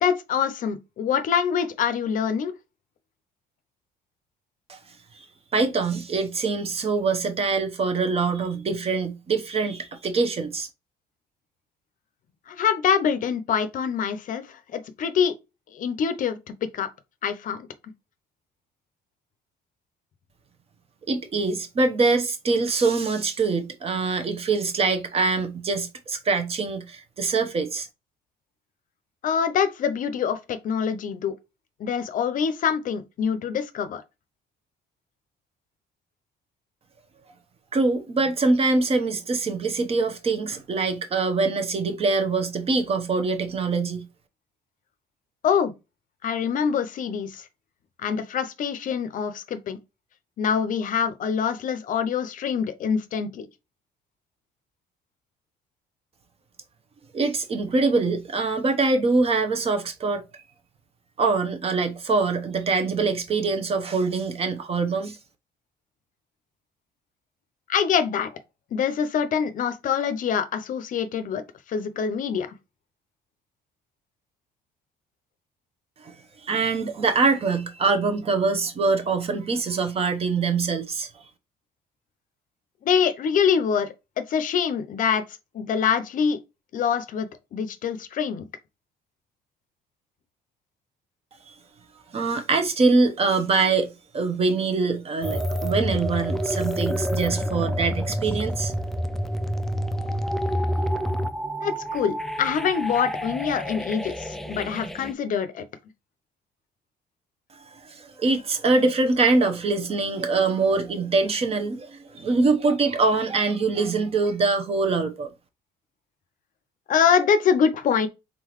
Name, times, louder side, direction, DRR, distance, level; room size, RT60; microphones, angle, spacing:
voice 1, 0.0-2.5 12.5-15.3 15.7-16.4 16.7-16.9 17.2-17.7 29.2-31.3 31.8-34.0 45.4-45.7 46.2-47.5 48.0-49.8 50.4-53.5 67.7-68.3 68.7-71.4 71.7-72.5 82.8-85.2 85.5-86.4 86.7-87.3 87.5-88.5 101.6-105.7 116.9-118.1, left 7 dB, 50° left, 0.6 m, -25 dB
voice 2, 5.5-10.7 21.1-27.9 37.7-44.1 57.1-60.4 61.2-65.2 76.0-76.2 76.4-81.1 91.5-91.6 92.1-98.7 107.8-115.3, right 3 dB, 35° right, 0.9 m, -24 dB
sound 1, 95.2-105.1, equal, ahead, 0.3 m, -28 dB
3.9 x 3.7 x 3.0 m
cardioid pair, 110°, 17 cm